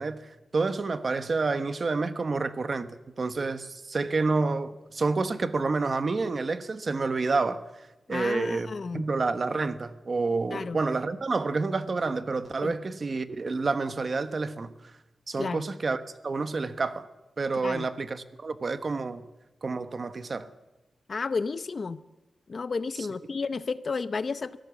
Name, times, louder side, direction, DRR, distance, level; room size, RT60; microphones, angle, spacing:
voice 1, 0.0-14.7 15.3-17.1 17.4-19.2 19.6-20.5 23.0-23.1, right 3 dB, 40° right, 1.2 m, -29 dB
voice 2, 8.1-9.1 10.5-10.8 12.6-12.7 15.4-15.6 17.6-17.9 21.1-22.0 22.5-24.6, left 4 dB, 45° left, 0.7 m, -32 dB
24.0 x 17.0 x 7.1 m
wide cardioid pair, 155°, 0 cm